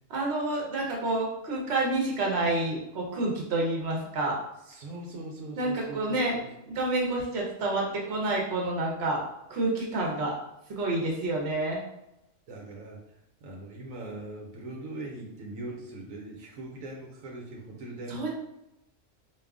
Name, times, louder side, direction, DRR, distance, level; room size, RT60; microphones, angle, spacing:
voice 1, 0.1-4.4 5.6-6.4 6.7-9.2 9.5-10.3 10.7-11.8 18.1-18.3, right 2 dB, 55° right, -2 dB, 1.2 m, -28 dB
voice 2, 4.7-6.5 12.5-18.3, right 2 dB, 85° right, -1 dB, 1.2 m, -41 dB
3.8 x 2.7 x 3.5 m, 0.86 s
omnidirectional pair, 1.4 m